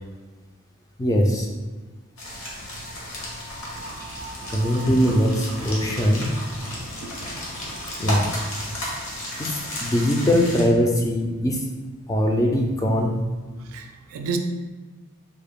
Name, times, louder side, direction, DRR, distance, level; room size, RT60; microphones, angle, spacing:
voice 1, 1.0-1.5 4.5-6.3 8.0-8.2 9.4-11.7 12.1-13.2, equal, 15° left, 0 dB, 0.3 m, -21 dB
sound 1, 2.2-10.6, left 1 dB, 70° left, 0.9 m, -33 dB
voice 2, 9.0-9.5 13.5-14.4, right 5 dB, 75° right, 5 dB, 0.4 m, -33 dB
3.7 x 2.1 x 3.5 m, 1.2 s
head